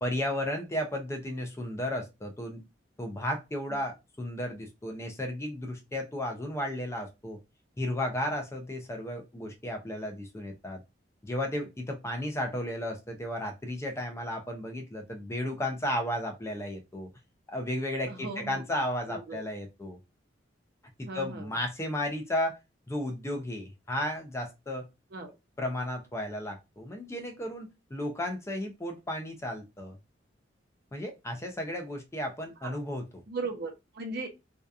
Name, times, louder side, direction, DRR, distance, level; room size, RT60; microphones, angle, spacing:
voice 1, 0.0-2.6 3.0-7.4 7.8-10.8 11.2-17.1 17.5-20.0 21.0-22.6 22.9-24.9 25.6-30.0 30.9-33.2, left 1 dB, 15° left, 0.4 m, -34 dB
voice 2, 18.1-18.6 19.1-19.4 21.1-21.6 25.1-25.3 32.6-32.8 33.3-34.3, right 3 dB, 55° right, 0.6 m, -37 dB
2.7 x 2.2 x 2.3 m
head